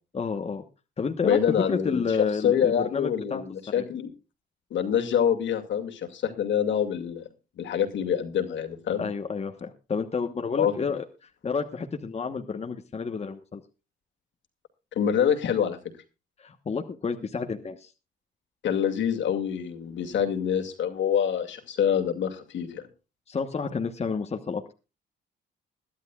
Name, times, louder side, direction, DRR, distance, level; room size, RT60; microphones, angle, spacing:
voice 1, 0.1-0.6 1.0-3.4 3.7-3.8 9.0-11.0 11.4-13.6 16.4-17.9 23.3-24.7, left 5 dB, 30° left, 5 dB, 1.2 m, -30 dB
voice 2, 1.2-2.2 2.4-4.1 4.7-7.2 7.6-9.1 10.6-10.7 15.0-15.8 18.6-22.9, left 8 dB, 70° left, 4 dB, 2.4 m, -26 dB
21.5 x 12.0 x 2.4 m, 0.30 s
cardioid pair, 90°, 20 cm